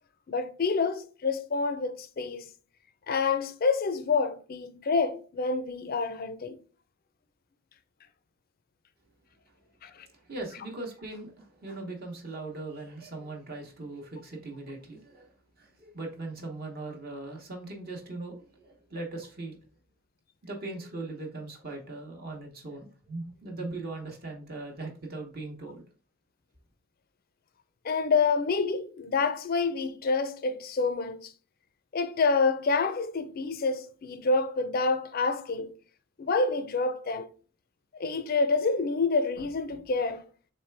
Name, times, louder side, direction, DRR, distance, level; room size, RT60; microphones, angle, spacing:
voice 1, 0.3-2.5 3.1-6.6 9.8-9.9 27.8-31.3 31.9-35.7 36.2-37.3 37.9-40.2, left 4 dB, 45° left, 0.4 m, -27 dB
voice 2, 10.3-15.3 15.6-19.6 20.4-25.8, right 2 dB, 45° right, 0.9 m, -39 dB
4.3 x 3.2 x 3.3 m
head